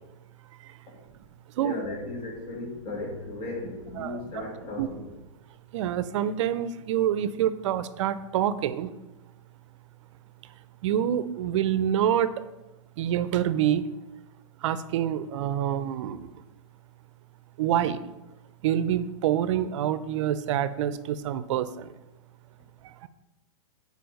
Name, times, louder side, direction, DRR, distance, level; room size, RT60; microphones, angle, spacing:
voice 1, 1.6-5.0, left 2 dB, 30° left, 0 dB, 2.1 m, -36 dB
voice 2, 5.7-8.9 10.4-10.5 10.8-12.4 13.0-13.9 14.6-16.4 17.6-18.0 18.6-21.9 22.8-23.1, right 10 dB, 60° right, 14 dB, 0.6 m, -27 dB
6.9 x 4.8 x 6.5 m, 1.0 s
hypercardioid pair, 135°, 18 cm